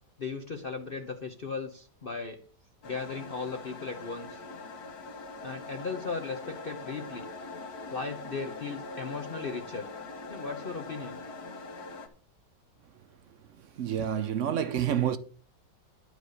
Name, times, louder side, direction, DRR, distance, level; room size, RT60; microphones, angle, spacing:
voice 1, 0.2-2.4 2.8-4.4 5.4-7.3 7.9-9.9 10.3-11.2, left 4 dB, 40° left, 0.9 m, -37 dB
sound 1, 2.8-12.1, left 3 dB, 60° left, 2.0 m, -42 dB
voice 2, 13.6-15.2, right 9 dB, 65° right, 0.8 m, -29 dB
11.0 x 5.0 x 6.4 m
omnidirectional pair, 1.9 m